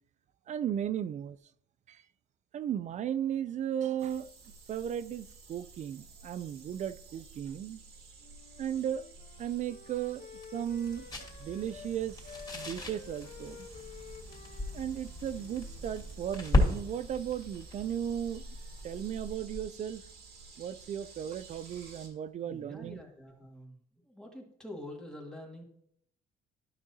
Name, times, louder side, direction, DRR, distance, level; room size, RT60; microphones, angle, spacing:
voice 1, 0.5-1.4 1.9-2.0 2.5-4.3 4.7-7.8 8.6-9.0 9.4-10.3 10.5-11.1 11.4-12.2 12.5-13.7 14.7-18.4 18.8-20.0 20.6-23.0, right 9 dB, 45° right, 0.4 m, -35 dB
sound 1, 4.0-22.1, right 4 dB, 70° right, 2.3 m, -53 dB
Wind instrument woodwind instrument, 8.2-11.9 12.2-16.3, left 6 dB, 50° left, 0.9 m, -51 dB
sound 2, 9.1-19.8, left 1 dB, 25° left, 2.9 m, -36 dB
voice 2, 22.4-23.8 24.0-25.6, left 1 dB, 5° left, 1.9 m, -46 dB
12.0 x 6.0 x 2.7 m
cardioid pair, 110°, 17 cm